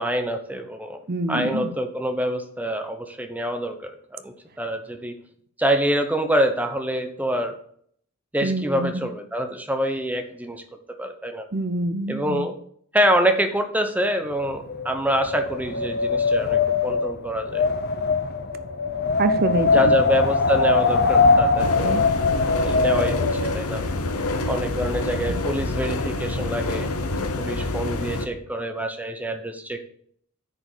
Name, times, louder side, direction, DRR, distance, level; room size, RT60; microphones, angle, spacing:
voice 1, 0.0-1.0 1.3-5.2 5.6-7.5 8.3-10.6 11.0-11.5 12.1-12.5 12.9-17.6 19.7-22.0 22.6-23.8 24.5-26.9 27.2-29.9, equal, 5° right, 7 dB, 0.9 m, -26 dB
voice 2, 1.1-1.7 8.4-9.0 11.5-12.4 19.2-20.0 21.8-22.0, right 2 dB, 45° right, 11 dB, 0.8 m, -25 dB
Wind, 14.4-23.6, left 4 dB, 45° left, 0.8 m, -22 dB
sound 1, 21.6-28.3, left 2 dB, 80° left, 1.0 m, -27 dB
9.6 x 5.1 x 6.8 m, 0.62 s
head